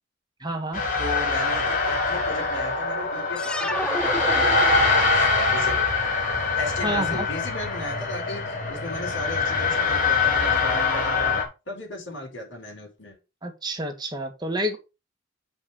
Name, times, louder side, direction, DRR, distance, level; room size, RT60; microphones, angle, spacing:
voice 1, 0.4-0.8 6.8-7.3 13.4-14.8, right 1 dB, 20° right, 1.8 m, -29 dB
sound 1, 0.7-11.4, left 4 dB, 45° left, 3.5 m, -23 dB
voice 2, 1.0-5.8 6.6-11.3 11.7-13.2, left 1 dB, 70° left, 6.0 m, -36 dB
sound 2, 3.4-5.2, left 1 dB, 5° left, 0.4 m, -31 dB
7.4 x 5.5 x 6.3 m
head